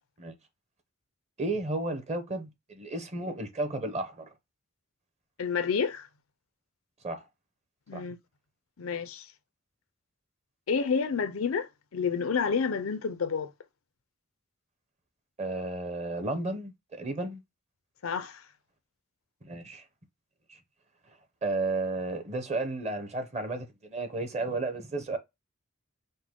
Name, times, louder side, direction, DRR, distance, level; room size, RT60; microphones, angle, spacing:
voice 1, 1.4-4.3 7.0-7.2 7.9-8.0 15.4-17.4 19.4-19.8 20.5-20.6 21.4-25.2, right 2 dB, 35° right, 0.8 m, -33 dB
voice 2, 5.4-6.1 7.9-8.2 8.8-9.3 10.7-13.5 18.0-18.4, left 5 dB, 90° left, 0.6 m, -29 dB
5.3 x 2.2 x 3.6 m
head